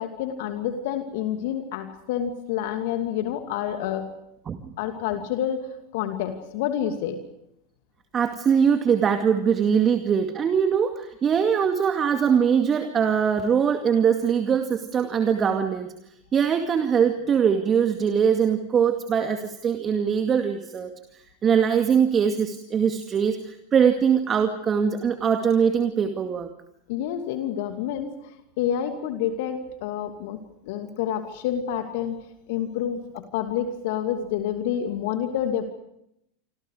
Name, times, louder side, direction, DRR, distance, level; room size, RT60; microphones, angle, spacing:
voice 1, 0.0-4.1 4.8-7.2 26.9-28.3 28.6-30.4 30.6-32.1 32.5-35.6, left 9 dB, 60° left, 6 dB, 2.7 m, -28 dB
voice 2, 8.1-15.9 16.3-26.5, right 7 dB, 30° right, 6 dB, 2.2 m, -22 dB
28.0 x 26.5 x 5.0 m, 0.76 s
figure-of-eight pair, 85°, 0 cm